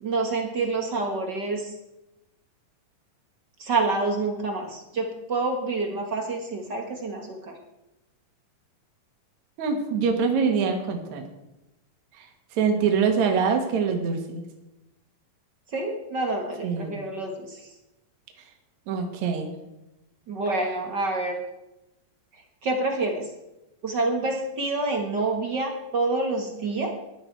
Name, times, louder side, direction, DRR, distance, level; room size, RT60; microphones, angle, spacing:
voice 1, 0.0-1.7 3.6-7.5 15.7-17.6 20.3-21.4 22.6-23.3 23.8-26.9, right 3 dB, 45° right, 2 dB, 1.5 m, -27 dB
voice 2, 9.6-11.3 12.2-12.3 12.5-14.4 16.6-17.0 18.9-19.5, right 5 dB, 60° right, 4 dB, 2.8 m, -24 dB
15.5 x 11.0 x 4.7 m, 0.95 s
omnidirectional pair, 3.9 m